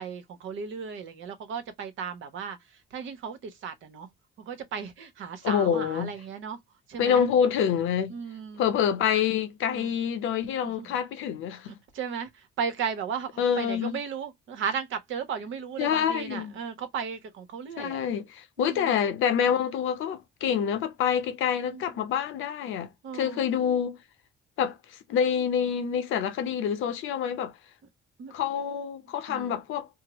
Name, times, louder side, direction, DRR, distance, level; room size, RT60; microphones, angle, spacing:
voice 1, 0.0-4.1 4.4-6.6 6.9-7.2 8.1-8.6 9.7-9.9 10.6-10.9 11.7-18.0 18.6-18.9 21.7-21.8 23.0-23.4 28.2-28.3 29.3-29.6, right 6 dB, 75° right, 0.9 m, -35 dB
voice 2, 5.4-6.1 7.0-8.2 8.6-11.7 13.4-14.0 15.8-16.5 17.8-24.0 24.6-27.5 28.3-29.9, left 8 dB, 85° left, 0.7 m, -27 dB
3.6 x 2.1 x 3.0 m
cardioid pair, 90°, 20 cm